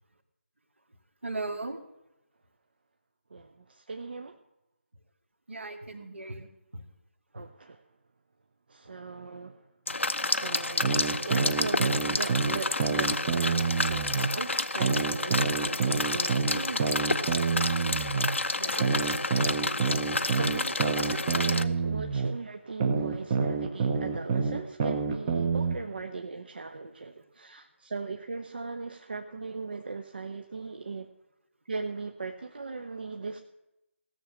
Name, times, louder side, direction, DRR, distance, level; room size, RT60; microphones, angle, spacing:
voice 1, 1.2-1.8 5.5-6.8 13.7-13.8 18.6-19.0, right 2 dB, 65° right, 6 dB, 2.2 m, -38 dB
voice 2, 3.3-4.4 7.3-7.8 8.7-9.6 10.4-17.4 20.3-31.1 31.7-33.4, right 4 dB, 50° right, 6 dB, 1.0 m, -39 dB
sound 1, 9.9-21.6, left 3 dB, 65° left, 0.8 m, -30 dB
sound 2, 10.8-14.3 14.8-18.3 18.8-22.3 22.8-25.8, right 5 dB, 20° right, 0.9 m, -28 dB
17.0 x 6.9 x 7.4 m, 0.87 s
figure-of-eight pair, 155°, 7 cm